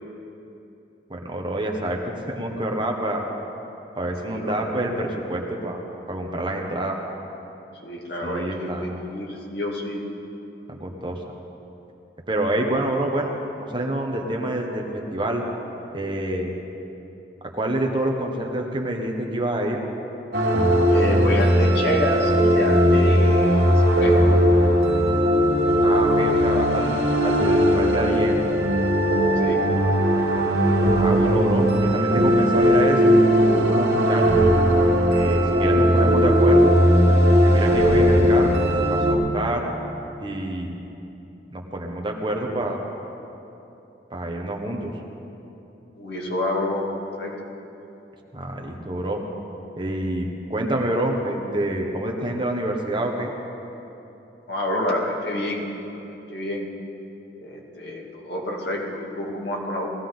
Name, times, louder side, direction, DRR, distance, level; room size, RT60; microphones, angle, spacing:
voice 1, 1.1-2.0 2.3-3.3 4.0-5.8 6.1-7.0 8.2-9.0 10.7-11.2 12.3-15.4 15.9-16.5 17.5-19.8 25.8-28.6 30.8-34.2 35.1-36.7 37.3-38.6 38.9-39.6 40.2-40.8 41.5-42.8 44.1-44.9 48.3-49.2 49.8-53.3, right 1 dB, 25° right, 1 dB, 1.3 m, -27 dB
voice 2, 4.2-4.7 7.8-10.0 20.9-23.7 24.0-24.3 29.4-29.7 46.0-46.9 47.2-47.3 54.5-55.7 55.9-56.0 56.3-56.7 57.4-59.9, left 1 dB, 70° left, -2 dB, 2.4 m, -28 dB
sound 1, 20.3-39.1, equal, 70° right, 2.0 m, -18 dB
20.5 x 15.0 x 4.0 m, 2.9 s
head